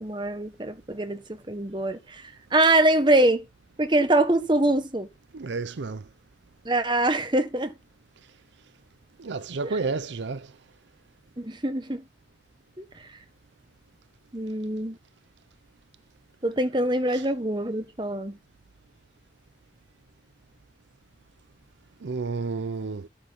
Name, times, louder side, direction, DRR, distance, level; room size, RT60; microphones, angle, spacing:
voice 1, 0.0-3.4 3.8-5.1 6.6-7.7 9.6-9.8 11.4-12.0 12.8-13.2 14.3-15.0 16.4-18.4, right 1 dB, 25° right, 1.3 m, -24 dB
voice 2, 5.3-6.0 9.2-10.5 22.0-23.1, right 4 dB, 75° right, 0.6 m, -31 dB
11.5 x 8.4 x 4.1 m
head